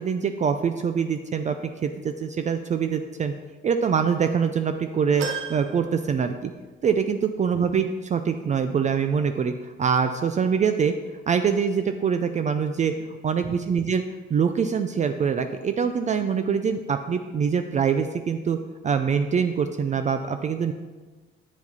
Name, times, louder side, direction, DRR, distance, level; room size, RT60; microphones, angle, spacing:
voice 1, 0.0-1.6 1.8-3.3 3.6-6.5 6.8-10.9 11.3-13.0 13.2-14.0 14.3-18.6 18.8-20.7, right 6 dB, 35° right, 8 dB, 0.4 m, -24 dB
sound 1, 5.2-6.8 7.3-7.4 8.6-8.7, right 6 dB, 70° right, 0.8 m, -36 dB
7.8 x 4.8 x 4.1 m, 1.3 s
cardioid pair, 90°, 20 cm